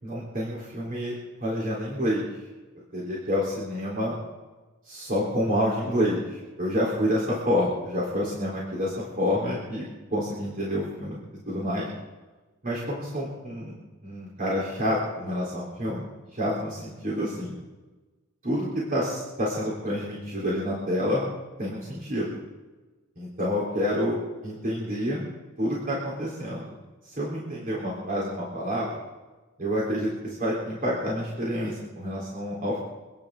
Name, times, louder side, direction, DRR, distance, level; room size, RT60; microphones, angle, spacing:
voice 1, 0.0-1.1 1.4-2.3 2.9-4.1 4.8-9.8 10.1-11.2 11.5-11.9 12.6-13.7 14.0-17.5 18.4-21.3 21.6-22.3 23.2-24.2 24.4-25.2 25.6-26.7 27.0-28.9 29.6-32.8, equal, 45° right, -5 dB, 3.9 m, -28 dB
29.0 x 10.5 x 3.9 m, 1.2 s
head